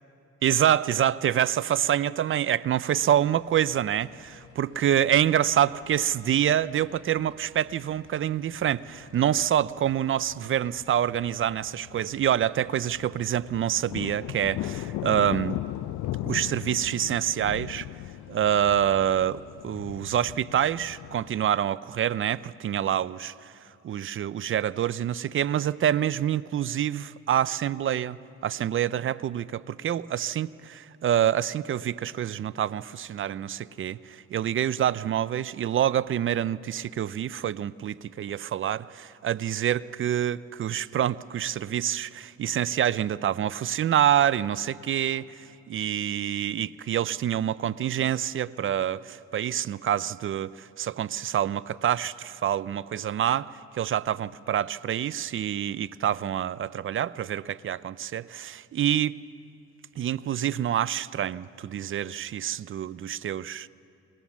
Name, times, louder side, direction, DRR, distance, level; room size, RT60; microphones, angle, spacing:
voice 1, 0.4-15.6 16.3-17.9 18.3-23.5 23.8-28.2 28.4-53.5 53.7-59.2 60.0-63.7, right 10 dB, 45° right, 0.4 m, -26 dB
sound 1, 3.3-21.5, left 15 dB, 75° left, 0.5 m, -39 dB
21.5 x 18.5 x 7.2 m
cardioid pair, 90°, 30 cm